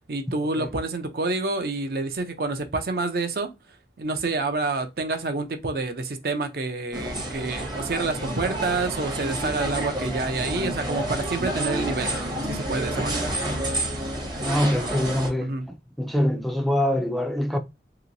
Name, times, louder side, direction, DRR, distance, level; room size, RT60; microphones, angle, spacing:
voice 1, 0.1-3.5 4.0-12.1 12.4-13.3 15.4-15.7, right 3 dB, 55° right, 0.5 m, -28 dB
sound 1, 6.9-15.3, right 1 dB, 25° right, 0.7 m, -29 dB
voice 2, 14.4-15.5 16.0-17.6, left 1 dB, ahead, 0.3 m, -24 dB
2.9 x 2.9 x 2.6 m
head